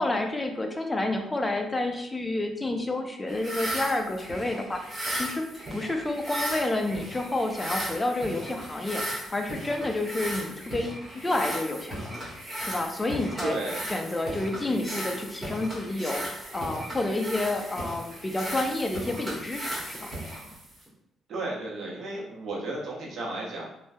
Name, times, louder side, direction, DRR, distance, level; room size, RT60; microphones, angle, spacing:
voice 1, 0.0-4.8 5.1-5.4 5.7-12.2 12.6-13.6 13.9-20.1, left 2 dB, 20° left, 4 dB, 0.4 m, -29 dB
sound 1, 3.3-20.9, equal, 20° right, 1.2 m, -36 dB
voice 2, 13.4-13.8 21.3-23.7, right 2 dB, 65° right, -3 dB, 0.8 m, -33 dB
3.1 x 2.2 x 2.6 m, 0.80 s
cardioid pair, 90°, 0 cm